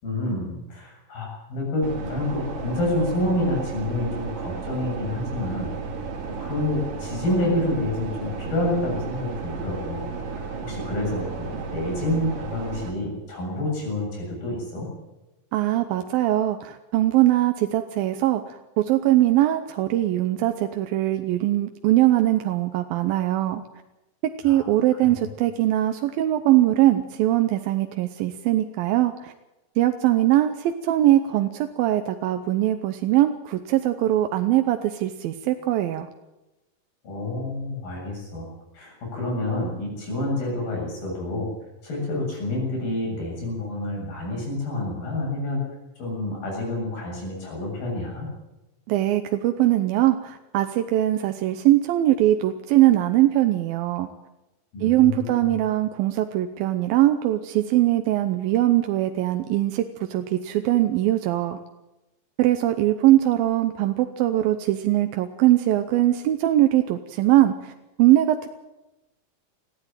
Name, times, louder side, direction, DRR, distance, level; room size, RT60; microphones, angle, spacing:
voice 1, 0.0-5.7 6.4-10.0 10.3-14.9 24.5-24.7 25.0-25.2 37.0-38.5 38.7-41.5 41.8-45.6 46.0-48.3 54.7-55.3, left 1 dB, 85° left, -1 dB, 9.4 m, -28 dB
sound 1, 1.8-12.9, right 4 dB, 70° right, 4.1 m, -33 dB
voice 2, 15.5-23.6 24.4-29.3 29.8-36.1 48.9-54.1 54.8-61.6 62.4-67.7 68.0-68.5, right 14 dB, 90° right, 7 dB, 2.7 m, -21 dB
20.0 x 15.0 x 9.1 m, 1.0 s
omnidirectional pair, 4.0 m